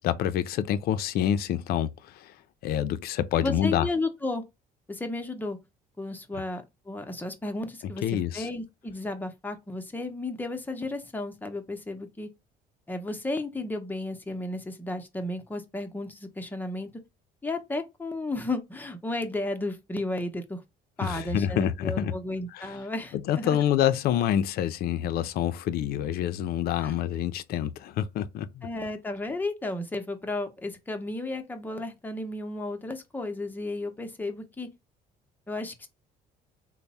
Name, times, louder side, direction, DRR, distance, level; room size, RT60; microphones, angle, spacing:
voice 1, 0.0-2.3 2.6-3.9 7.8-8.5 21.0-22.1 22.5-22.8 23.1-28.7, left 10 dB, 65° left, 0.4 m, -27 dB
voice 2, 3.3-4.4 4.9-5.6 6.0-8.0 8.3-12.3 12.9-16.9 17.4-20.6 21.0-23.6 26.8-26.9 28.6-34.7 35.5-35.9, left 2 dB, 10° left, 0.6 m, -33 dB
3.3 x 2.0 x 4.0 m
cardioid pair, 110°, 17 cm